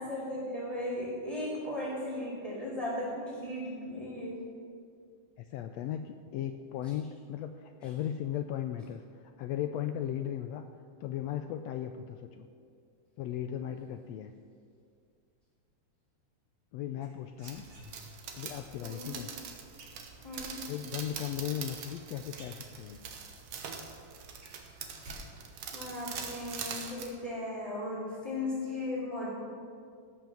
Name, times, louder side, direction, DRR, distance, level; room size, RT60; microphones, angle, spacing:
voice 1, 0.0-4.4 18.8-19.1 20.2-20.7 24.9-25.0 25.7-29.3, left 1 dB, 10° left, -11 dB, 2.5 m, -36 dB
voice 2, 5.4-10.6 11.0-12.5 13.2-14.3 16.7-17.6 18.3-19.3 20.7-23.0, left 10 dB, 85° left, 8 dB, 1.5 m, -37 dB
sound 1, 17.0-18.3 19.8-20.5 21.9-22.0 22.3-23.1 23.5-23.6 23.9-25.2 25.4-25.9, equal, 80° right, 5.4 m, -52 dB
sound 2, 17.4-27.1, right 6 dB, 60° right, 1.8 m, -43 dB
17.0 x 5.7 x 7.6 m, 2.3 s
omnidirectional pair, 3.5 m